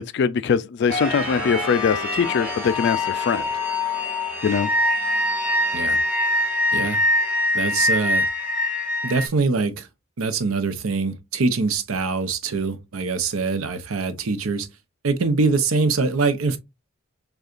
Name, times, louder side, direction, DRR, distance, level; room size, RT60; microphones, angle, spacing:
voice 1, 0.0-3.5 4.4-4.7, left 6 dB, 55° left, 0.3 m, -22 dB
sound 1, 0.9-9.3, left 1 dB, 5° right, 1.6 m, -24 dB
voice 2, 7.5-8.3 9.0-9.9 10.2-14.7 15.0-16.6, right 4 dB, 80° right, 0.7 m, -23 dB
6.4 x 2.3 x 2.4 m
head